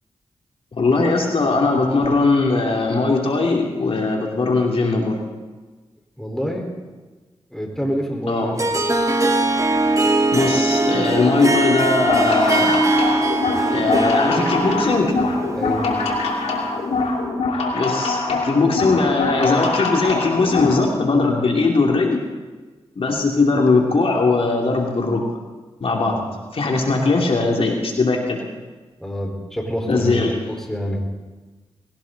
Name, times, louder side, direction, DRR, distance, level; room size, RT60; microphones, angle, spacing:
voice 1, 0.8-5.2 8.3-8.9 10.3-12.8 13.7-15.1 17.7-22.2 23.0-25.2 25.8-26.2 26.5-28.4 29.9-30.5, left 3 dB, 60° left, 0 dB, 2.7 m, -19 dB
voice 2, 6.2-6.7 7.5-8.5 15.5-15.9 26.1-26.3 29.0-30.2 30.5-31.0, equal, 5° left, 1 dB, 4.5 m, -26 dB
Harp, 8.6-17.0, right 2 dB, 30° right, 1.6 m, -21 dB
sound 1, 12.0-20.8, left 3 dB, 85° left, 2.6 m, -24 dB
20.0 x 17.5 x 4.1 m, 1.3 s
cardioid pair, 55°, 11 cm